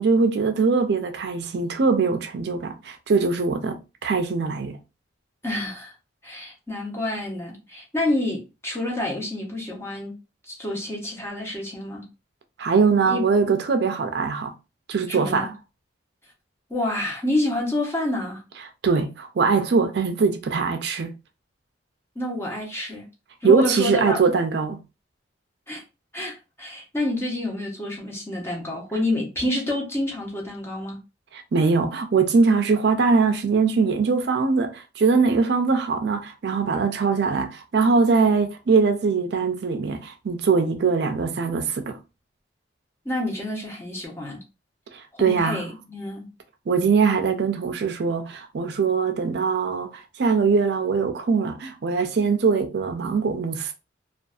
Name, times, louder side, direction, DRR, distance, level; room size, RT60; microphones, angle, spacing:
voice 1, 0.0-4.8 12.6-14.5 14.9-15.5 18.8-21.1 23.4-24.8 31.3-42.0 44.9-45.7 46.7-53.7, right 5 dB, 60° right, 0.4 m, -22 dB
voice 2, 5.4-5.9 6.2-10.1 10.4-12.0 13.0-13.3 15.1-15.5 16.7-18.4 22.2-23.1 23.4-24.2 25.7-25.8 26.1-31.0 43.0-44.4 45.1-46.3, left 1 dB, 15° left, 0.7 m, -28 dB
2.5 x 2.3 x 2.3 m
head